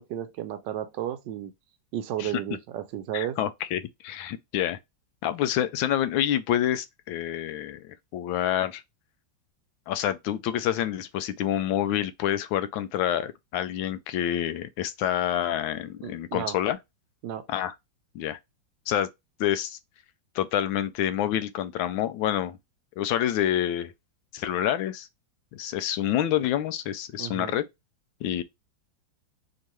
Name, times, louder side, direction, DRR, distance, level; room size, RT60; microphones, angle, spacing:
voice 1, 0.0-1.5 1.9-3.4 16.0-16.6 17.2-17.5 27.2-27.5, right 11 dB, 75° right, 1.2 m, -33 dB
voice 2, 3.1-4.8 5.2-8.8 9.9-16.8 17.5-17.7 18.1-18.4 18.9-19.1 19.4-19.8 20.3-22.6 23.0-23.9 24.3-25.1 25.5-27.6 28.2-28.4, left 11 dB, 90° left, 1.4 m, -27 dB
4.5 x 3.0 x 3.0 m
omnidirectional pair, 2.1 m